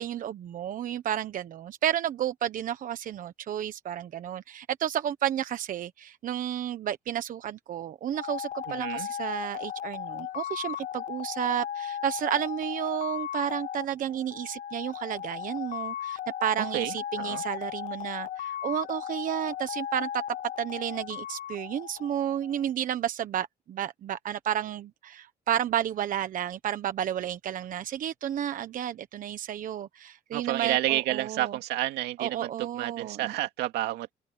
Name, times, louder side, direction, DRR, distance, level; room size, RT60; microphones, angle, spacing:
voice 1, 0.0-20.2 20.6-31.6 32.2-33.3, right 10 dB, 55° right, 1.2 m, -32 dB
sound 1, 8.1-22.6, left 10 dB, 50° left, 0.7 m, -36 dB
voice 2, 8.7-9.1 16.7-17.4 30.3-34.1, right 15 dB, 85° right, 2.3 m, -30 dB
open air
cardioid pair, 110°, 17 cm